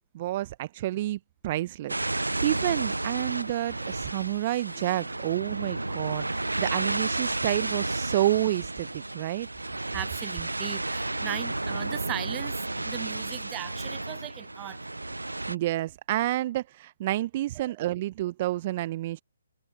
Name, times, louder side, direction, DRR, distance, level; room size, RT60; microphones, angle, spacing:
voice 1, 0.1-9.5 15.5-19.2, right 15 dB, 35° right, 0.9 m, -29 dB
sound 1, 1.9-15.6, right 2 dB, 85° right, 0.6 m, -32 dB
sound 2, 4.7-15.9, left 12 dB, 40° left, 7.9 m, -57 dB
voice 2, 9.9-14.8 17.6-17.9, right 17 dB, 20° right, 1.2 m, -38 dB
figure-of-eight pair, 135°, 0 cm